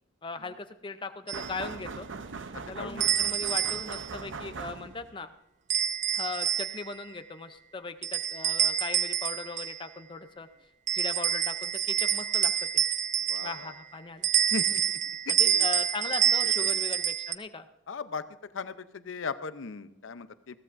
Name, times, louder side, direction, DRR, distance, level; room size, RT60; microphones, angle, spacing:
voice 1, 0.2-2.1 2.6-5.3 6.1-10.5 10.9-12.8 13.4-14.3 15.3-17.7, left 4 dB, 25° left, 9 dB, 0.5 m, -38 dB
sound 1, 1.3-1.5 3.0-4.1 5.7-6.9 8.0-9.8 10.9-13.7 14.2-17.3, right 9 dB, 35° right, 0.4 m, -27 dB
sound 2, 1.3-5.2, right 4 dB, 75° right, 0.7 m, -40 dB
voice 2, 2.8-3.1 13.3-13.7 14.5-15.0 15.3-15.7 16.4-16.8 17.9-18.2 18.5-20.5, left 4 dB, 80° left, 12 dB, 0.6 m, -38 dB
21.0 x 15.5 x 2.6 m, 0.89 s
head